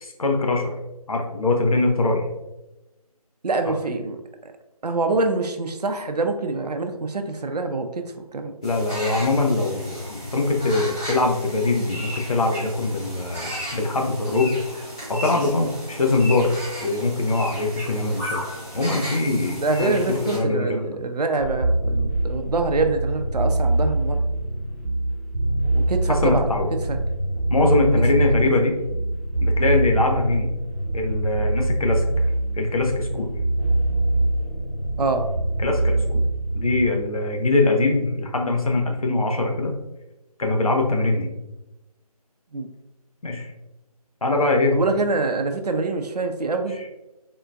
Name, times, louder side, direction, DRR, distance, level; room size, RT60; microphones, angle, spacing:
voice 1, 0.0-0.8 1.1-2.2 3.7-3.8 8.6-14.5 15.1-16.5 16.8-18.4 18.7-20.8 26.1-26.7 27.5-28.8 29.4-30.5 30.9-32.0 32.6-33.3 35.6-36.2 36.5-39.7 40.4-41.3 43.2-43.5 44.2-44.8, left 2 dB, 65° left, 2 dB, 0.6 m, -22 dB
voice 2, 3.4-4.2 4.4-4.5 4.8-8.5 19.6-24.2 25.7-26.5 26.9-27.0 28.2-28.5 35.0-35.3 42.5-42.7 44.7-46.8, right 3 dB, 85° right, 6 dB, 0.5 m, -25 dB
sound 1, 8.6-20.4, equal, 10° left, 0.6 m, -35 dB
sound 2, 21.4-36.9, right 2 dB, 30° left, 1.2 m, -24 dB
3.7 x 2.2 x 2.5 m, 0.97 s
figure-of-eight pair, 165°, 20 cm